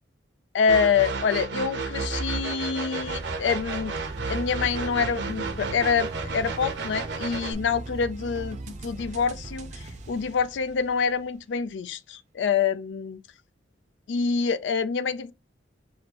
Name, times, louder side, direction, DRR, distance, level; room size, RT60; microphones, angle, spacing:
voice 1, 0.5-3.9 4.3-13.2 14.1-15.3, left 6 dB, 75° left, 0.3 m, -26 dB
sound 1, 0.7-7.5, right 4 dB, 70° right, 0.8 m, -32 dB
sound 2, 3.0-11.4, right 2 dB, 40° right, 0.6 m, -40 dB
6.1 x 2.5 x 2.8 m
head